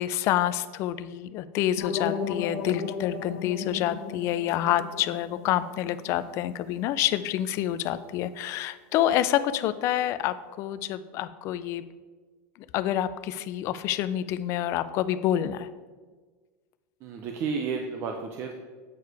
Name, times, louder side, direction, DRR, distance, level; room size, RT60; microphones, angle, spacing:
voice 1, 0.0-11.8 12.7-15.7, left 12 dB, 35° left, 14 dB, 0.3 m, -27 dB
sound 1, 1.8-6.7, left 6 dB, 75° left, 1.3 m, -36 dB
voice 2, 17.0-18.5, right 5 dB, 30° right, 3 dB, 0.5 m, -32 dB
8.2 x 4.7 x 4.7 m, 1.4 s
supercardioid pair, 165°, 8 cm